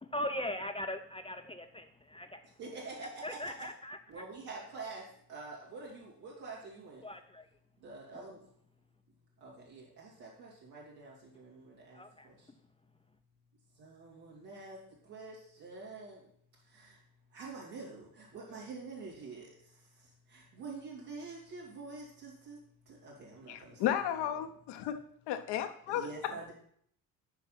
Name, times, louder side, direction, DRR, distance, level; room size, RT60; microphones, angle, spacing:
voice 1, 0.0-2.4 3.2-4.0 7.0-7.5 11.9-12.3, left 1 dB, 10° left, 7 dB, 0.7 m, -39 dB
voice 2, 2.6-3.7 4.1-5.0 5.3-7.0 7.8-8.4 9.4-12.0 13.8-14.8 15.1-16.2 17.3-19.5 20.3-22.6 23.0-24.4 25.3-25.4 25.9-26.5, right 3 dB, 75° right, -5 dB, 3.2 m, -46 dB
voice 3, 23.5-25.0 25.3-26.1, left 11 dB, 60° left, 8 dB, 1.0 m, -34 dB
8.7 x 5.4 x 5.9 m, 0.65 s
figure-of-eight pair, 45°, 47 cm